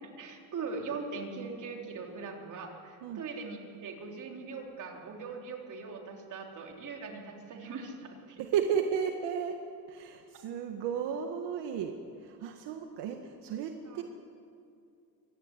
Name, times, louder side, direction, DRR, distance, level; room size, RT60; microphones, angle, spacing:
voice 1, 0.0-8.4 13.9-14.0, right 4 dB, 50° right, 1 dB, 3.8 m, -41 dB
voice 2, 8.4-9.6 9.9-14.0, right 7 dB, 85° right, 4 dB, 1.8 m, -33 dB
24.5 x 17.0 x 9.9 m, 2.4 s
cardioid pair, 155°, 40 cm